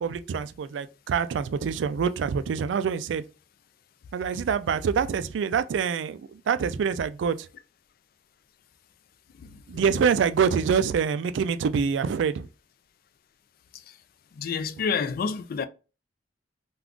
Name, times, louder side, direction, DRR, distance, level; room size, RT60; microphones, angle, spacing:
voice 1, 0.0-3.2 4.1-7.4 9.7-12.5, right 6 dB, 85° right, 0.3 m, -25 dB
voice 2, 14.4-15.7, left 5 dB, 55° left, 0.3 m, -28 dB
2.4 x 2.3 x 3.5 m
head